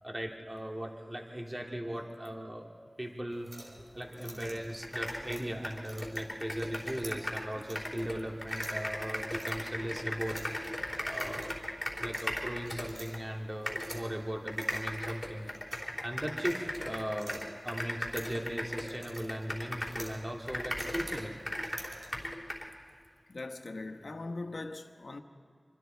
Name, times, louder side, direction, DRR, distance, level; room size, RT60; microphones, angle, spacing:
voice 1, 0.0-2.7 3.0-3.5 3.9-10.4 11.1-11.5 12.0-15.5 16.0-21.4, equal, 25° right, 2.5 m, -38 dB
sound 1, 3.3-22.3, right 1 dB, 70° right, 3.9 m, -51 dB
sound 2, 4.4-4.5 4.8-7.5 7.7-13.2 13.7-14.0 14.5-20.1 20.5-22.7, left 1 dB, 15° left, 3.4 m, -37 dB
voice 2, 23.3-25.2, left 2 dB, 80° left, 1.2 m, -40 dB
26.0 x 25.0 x 4.5 m
wide cardioid pair, 65°, 0 cm